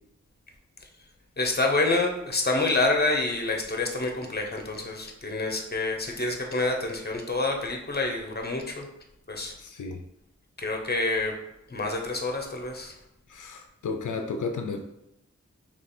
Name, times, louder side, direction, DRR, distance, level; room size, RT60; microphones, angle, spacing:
voice 1, 1.4-8.9 9.3-9.6 10.6-11.3 11.7-12.9, left 2 dB, 35° left, 2 dB, 0.8 m, -27 dB
voice 2, 9.6-10.0 13.3-14.8, left 4 dB, 90° left, 4 dB, 0.5 m, -33 dB
3.1 x 3.0 x 4.2 m, 0.83 s
wide cardioid pair, 60°, 30 cm